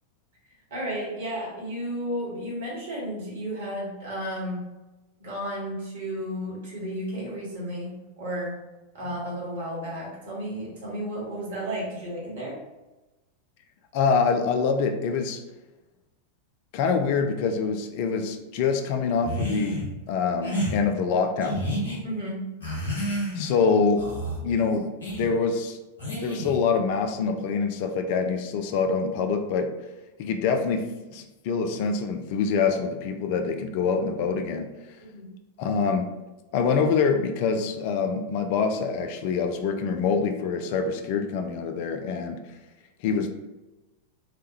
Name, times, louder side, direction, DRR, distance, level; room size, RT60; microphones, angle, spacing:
voice 1, 0.7-4.6 5.2-8.6 8.9-12.6 22.0-22.4 35.0-35.4, equal, 60° right, -4 dB, 1.2 m, -33 dB
voice 2, 13.9-15.4 16.7-19.8 20.1-21.6 23.3-24.1 24.4-24.9 25.2-25.8 26.2-29.7 30.2-34.7 35.6-36.1 36.5-42.4 43.0-43.3, left 5 dB, 45° left, 6 dB, 0.3 m, -25 dB
sound 1, 19.2-19.9 20.4-20.7 21.4-22.0 22.6-23.6 24.0-24.4 25.0-25.3 26.0-26.6, equal, 75° left, 1.0 m, -30 dB
3.3 x 2.2 x 2.7 m, 1.1 s
figure-of-eight pair, 90°, 0 cm